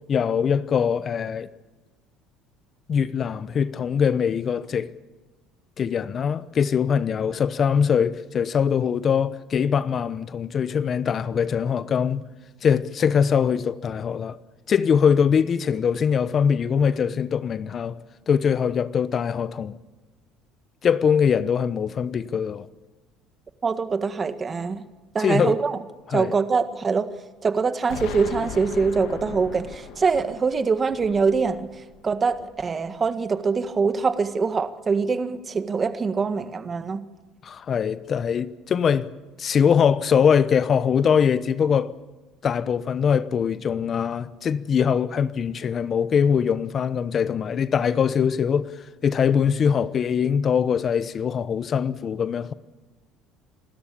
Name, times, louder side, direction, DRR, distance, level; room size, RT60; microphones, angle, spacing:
voice 1, 0.1-1.5 2.9-4.9 5.8-12.2 12.6-14.4 14.7-18.0 18.3-19.8 20.8-22.7 25.2-25.6 26.1-26.3 37.4-39.1 39.4-41.9 42.4-52.5, left 7 dB, 40° left, 0.9 m, -22 dB
voice 2, 23.6-24.8 25.1-25.8 26.1-27.1 27.4-31.7 32.0-37.0, right 5 dB, 30° right, 1.7 m, -24 dB
Explosion, 27.9-32.7, left 9 dB, 75° left, 2.2 m, -38 dB
27.5 x 13.0 x 8.6 m
supercardioid pair, 90°, 0 cm